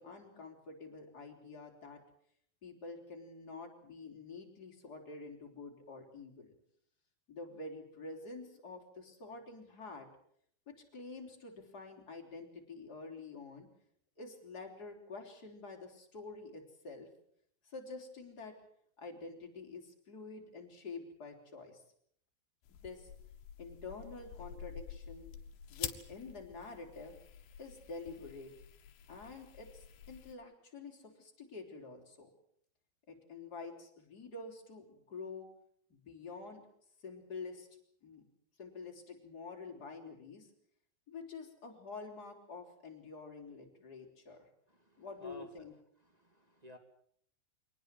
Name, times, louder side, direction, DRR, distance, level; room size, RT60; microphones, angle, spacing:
voice 1, 0.0-2.0 2.6-6.5 7.3-10.1 10.7-13.7 14.2-17.1 17.6-18.5 19.0-21.8 22.8-23.1 23.6-25.3 25.7-27.2 27.6-28.5 29.1-32.3 33.1-35.5 35.9-36.6 37.0-37.7 38.0-38.2 38.6-40.5 41.1-44.5 45.0-45.7, left 3 dB, 25° left, 1 dB, 4.1 m, -48 dB
sound 1, 22.6-30.4, left 9 dB, 90° left, 3.1 m, -48 dB
voice 2, 44.9-45.5 46.2-46.8, left 1 dB, 15° right, 6 dB, 1.6 m, -53 dB
24.0 x 19.0 x 7.7 m, 0.66 s
omnidirectional pair, 4.3 m